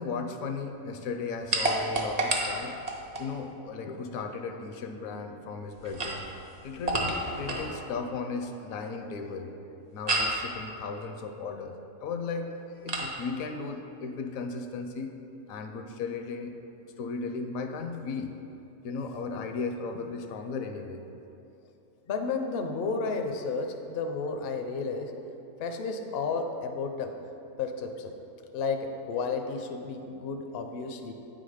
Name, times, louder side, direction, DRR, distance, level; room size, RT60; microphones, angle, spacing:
voice 1, 0.0-2.7 3.2-6.2 6.6-9.5 9.9-11.8 12.0-15.1 15.5-16.5 17.0-18.4 18.8-21.0, left 4 dB, 75° left, 5 dB, 1.0 m, -36 dB
sound 1, 1.5-3.3 5.8-7.7 10.1-10.4 12.9-13.1, right 2 dB, 40° right, 0.6 m, -29 dB
voice 2, 22.1-25.1 25.6-27.1 27.6-28.1 28.5-31.1, left 4 dB, 60° left, 5 dB, 0.6 m, -32 dB
8.7 x 3.9 x 4.9 m, 2.8 s
omnidirectional pair, 1.5 m